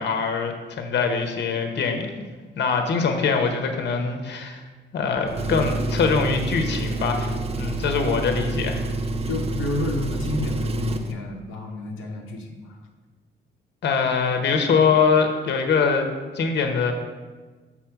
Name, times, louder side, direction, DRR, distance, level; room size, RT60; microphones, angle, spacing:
voice 1, 0.0-2.1 2.6-4.6 4.9-8.9 13.8-16.1 16.3-16.9, left 5 dB, 60° left, 5 dB, 1.0 m, -23 dB
Engine, 5.3-11.1, right 2 dB, 30° right, 0.5 m, -28 dB
voice 2, 9.3-12.8, left 2 dB, 85° left, -1 dB, 0.8 m, -30 dB
6.0 x 4.2 x 5.8 m, 1.4 s
cardioid pair, 90°, 20 cm